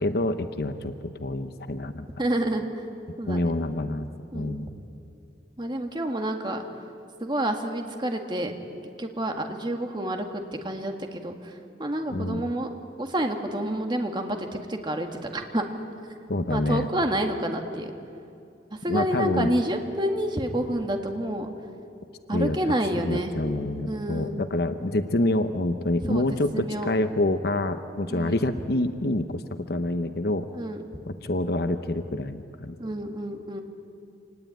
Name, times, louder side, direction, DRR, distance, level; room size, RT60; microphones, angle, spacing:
voice 1, 0.0-2.0 3.3-4.1 4.3-4.7 12.1-12.4 16.3-16.9 18.9-19.5 22.3-22.6 22.9-29.4 29.7-30.5 31.1-32.7, left 1 dB, 60° left, 9 dB, 0.9 m, -27 dB
voice 2, 2.2-2.8 3.2-3.5 4.3-4.6 5.6-6.6 7.2-8.5 9.0-12.7 13.0-15.7 16.5-17.9 18.7-21.5 22.3-23.3 23.9-24.4 26.1-26.3 26.5-26.9 28.1-28.4 30.5-30.8 32.8-33.6, right 1 dB, 25° right, 4 dB, 1.9 m, -29 dB
26.0 x 19.5 x 9.2 m, 2.6 s
head